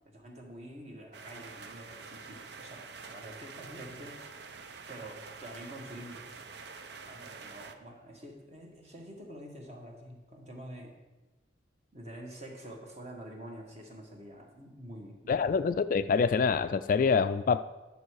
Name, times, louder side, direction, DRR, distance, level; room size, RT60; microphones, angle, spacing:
voice 1, 0.0-4.2 4.9-6.4 7.1-10.9 11.9-15.6, right 1 dB, 35° right, 1 dB, 1.7 m, -47 dB
sound 1, 1.1-7.7, right 5 dB, 65° right, 0.6 m, -47 dB
voice 2, 15.3-17.6, left 5 dB, 50° left, 12 dB, 0.3 m, -26 dB
11.0 x 7.1 x 4.7 m, 1.1 s
head